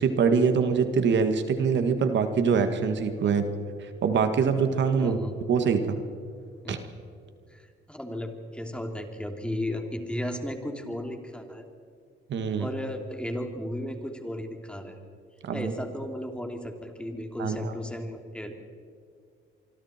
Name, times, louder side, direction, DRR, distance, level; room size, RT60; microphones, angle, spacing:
voice 1, 0.0-3.5 3.8-5.2 5.5-6.0 6.7-6.8 12.3-12.7 15.4-15.7 17.4-17.7, right 6 dB, 65° right, 8 dB, 1.9 m, -24 dB
voice 2, 5.0-5.3 6.6-6.8 7.5-11.7 12.6-15.0 15.5-18.6, left 1 dB, 5° left, 4 dB, 3.0 m, -35 dB
26.0 x 24.5 x 4.5 m, 2.3 s
cardioid pair, 90°, 20 cm